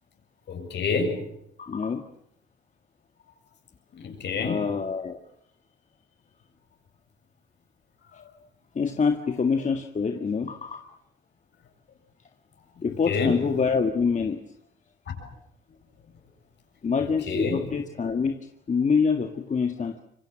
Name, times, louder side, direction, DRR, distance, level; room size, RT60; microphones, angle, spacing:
voice 1, 0.5-1.2 3.9-4.7 12.8-13.4 15.2-15.3 17.0-17.6, left 4 dB, 60° left, 4 dB, 7.7 m, -28 dB
voice 2, 1.6-2.0 4.4-5.2 8.8-10.8 12.8-14.4 16.8-18.4 18.7-20.0, left 5 dB, 35° left, 5 dB, 1.9 m, -25 dB
27.0 x 24.0 x 7.5 m, 0.74 s
cardioid pair, 90°, 20 cm